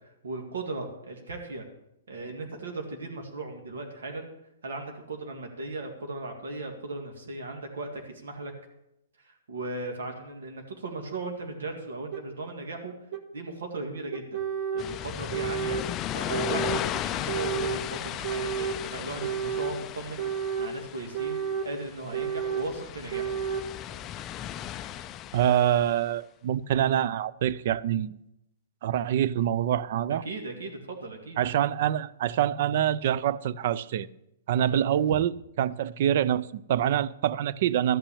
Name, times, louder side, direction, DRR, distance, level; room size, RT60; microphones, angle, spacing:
voice 1, 0.2-1.7 2.1-4.3 4.6-8.5 9.2-12.9 13.3-14.4 14.7-15.8 16.1-23.4 30.1-31.4 34.6-35.2, right 2 dB, 85° right, 2.0 m, -37 dB
sound 1, 12.1-12.2 13.1-13.2 14.1-14.9 15.3-15.9 16.3-16.9 17.3-17.8 18.2-18.8 19.2-19.8 20.2-20.7 21.1-21.7 22.1-22.7 23.1-23.7, right 7 dB, 30° right, 1.2 m, -31 dB
sound 2, 14.8-26.0, left 11 dB, 20° left, 0.3 m, -36 dB
voice 2, 25.3-28.2 28.8-30.2 31.4-34.1 34.5-35.3 35.6-38.0, right 10 dB, 45° right, 0.4 m, -25 dB
13.5 x 5.9 x 8.5 m
hypercardioid pair, 165°, 0 cm